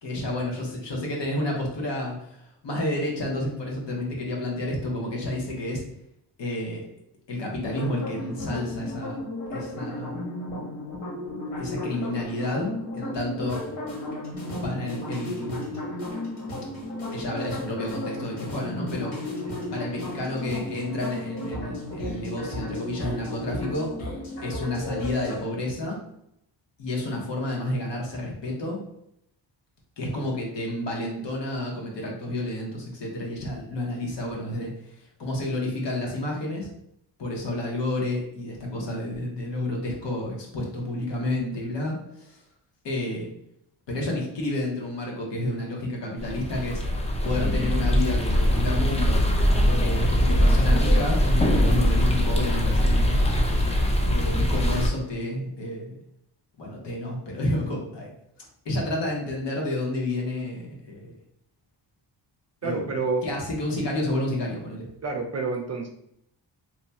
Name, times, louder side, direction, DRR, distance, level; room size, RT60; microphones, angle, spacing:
voice 1, 0.0-5.8 6.4-6.8 7.3-9.2 9.5-10.3 11.6-13.6 14.6-15.6 17.1-19.3 19.7-23.9 24.4-26.0 26.8-28.8 30.0-36.7 37.2-42.4 42.8-43.3 43.9-46.8 47.2-49.2 49.8-53.2 54.1-56.0 56.6-58.1 58.4-61.1 62.6-62.9 63.2-64.9, left 1 dB, 65° left, -1 dB, 1.3 m, -30 dB
sound 1, 7.6-25.4, left 1 dB, 90° left, 1.5 m, -34 dB
sound 2, 46.2-54.9, equal, 15° left, 0.5 m, -22 dB
voice 2, 62.6-63.3 65.0-65.9, right 4 dB, 35° right, 4 dB, 0.5 m, -28 dB
3.0 x 2.3 x 4.1 m, 0.75 s
cardioid pair, 95°, 46 cm